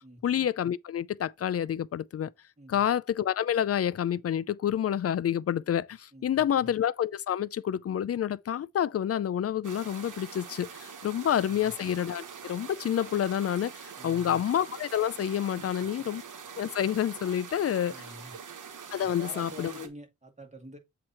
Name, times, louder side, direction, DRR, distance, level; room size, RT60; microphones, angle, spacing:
voice 1, 0.2-2.3 2.7-16.2 16.6-17.9 18.9-19.7, left 10 dB, 50° left, 0.4 m, -28 dB
voice 2, 6.1-6.7 11.4-11.7 14.0-14.4 15.5-15.8 17.9-18.3 19.0-20.8, right 1 dB, 25° right, 2.0 m, -47 dB
sound 1, 9.6-19.9, right 6 dB, 85° right, 1.1 m, -44 dB
7.7 x 2.9 x 5.7 m
cardioid pair, 75°, 30 cm